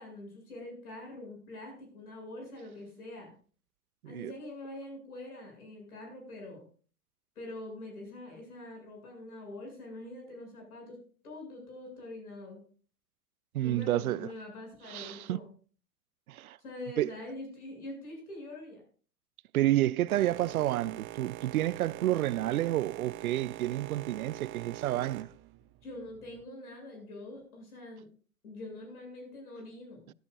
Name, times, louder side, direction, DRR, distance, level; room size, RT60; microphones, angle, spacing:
voice 1, 0.0-3.3 4.1-6.6 7.4-11.0 11.2-12.6 13.6-15.5 16.6-18.8 25.8-28.1 28.4-30.1, left 1 dB, 70° left, 7.4 m, -44 dB
voice 2, 13.5-14.3 14.9-15.4 16.3-16.6 17.0-17.1 19.5-25.3, right 14 dB, 70° right, 0.5 m, -30 dB
Boat Water vehicle, 20.1-26.4, right 15 dB, 25° right, 0.7 m, -44 dB
17.0 x 11.5 x 2.5 m
figure-of-eight pair, 100°, 46 cm